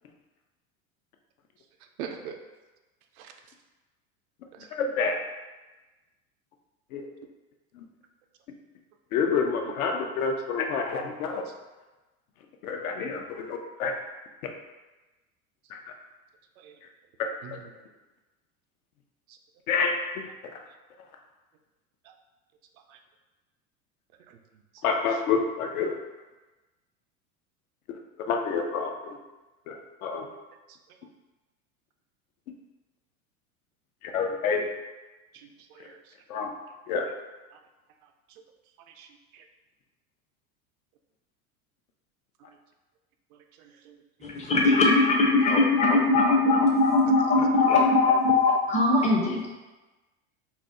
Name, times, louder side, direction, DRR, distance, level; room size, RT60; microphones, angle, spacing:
voice 1, 2.0-2.4 3.2-3.3 4.5-4.7 9.6-9.8 11.4-11.5 16.6-16.7 17.4-17.7 19.3-19.4 22.0-22.1 22.9-23.0 24.3-24.4 24.7-25.2 30.7-30.8 35.3-36.5 37.5-37.6 38.0-38.4 38.9-39.4 42.5-42.6 43.3-44.4 47.3-47.5, right 7 dB, 75° right, 5 dB, 0.5 m, -45 dB
voice 2, 4.7-5.2 6.9-7.0 9.1-11.4 12.6-13.9 15.7-15.8 17.2-17.6 19.7-20.3 24.8-26.0 28.2-29.2 29.7-30.3 34.0-34.7 36.3-36.5 36.9-37.1, left 5 dB, 75° left, 3 dB, 0.6 m, -28 dB
voice 3, 44.2-49.6, left 2 dB, 20° left, 0 dB, 0.4 m, -21 dB
2.5 x 2.0 x 3.6 m, 1.2 s
hypercardioid pair, 95°, 43 cm